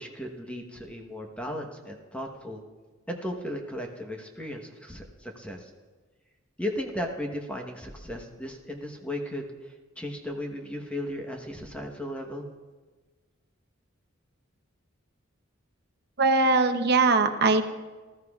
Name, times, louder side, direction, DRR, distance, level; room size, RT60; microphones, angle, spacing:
voice 1, 0.0-2.6 3.1-5.7 6.6-12.4, left 1 dB, 5° left, 2 dB, 1.1 m, -36 dB
voice 2, 16.2-17.6, right 3 dB, 50° right, 7 dB, 0.8 m, -21 dB
19.5 x 13.5 x 2.4 m, 1.3 s
head